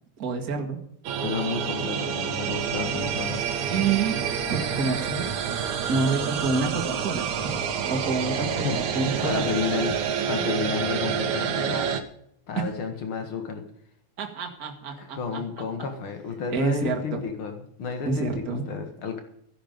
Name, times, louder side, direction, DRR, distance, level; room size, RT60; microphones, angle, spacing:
voice 1, 0.2-0.8 3.7-5.3 5.9-9.6 12.5-12.6 14.2-15.4 16.5-17.2 18.0-18.6, right 4 dB, 40° right, 2 dB, 1.2 m, -28 dB
sound 1, 1.0-12.0, right 8 dB, 75° right, 1.7 m, -28 dB
voice 2, 1.2-3.4 8.5-10.0 10.3-12.0 12.5-13.6 15.0-19.2, left 6 dB, 60° left, 5 dB, 1.3 m, -31 dB
sound 2, 2.4-10.0, left 1 dB, 15° right, 4.9 m, -44 dB
14.5 x 11.5 x 5.3 m, 0.70 s
omnidirectional pair, 5.2 m